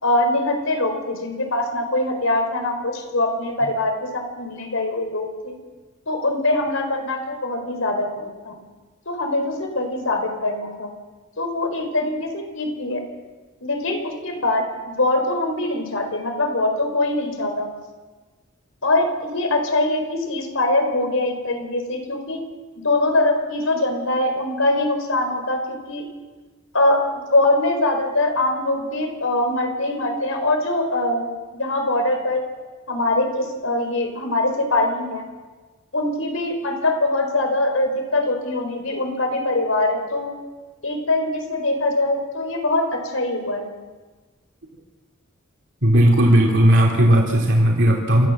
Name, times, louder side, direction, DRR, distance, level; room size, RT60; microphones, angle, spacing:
voice 1, 0.0-5.6 6.1-8.6 9.1-10.9 11.4-13.0 13.6-17.7 18.8-22.4 22.8-26.1 26.7-27.0 27.3-31.2 31.5-32.4 32.9-35.3 35.9-40.3 40.8-43.7, left 2 dB, 80° left, 5 dB, 4.6 m, -23 dB
voice 2, 45.8-48.3, right 1 dB, 65° right, -1 dB, 3.0 m, -16 dB
28.0 x 14.0 x 7.4 m, 1.3 s
head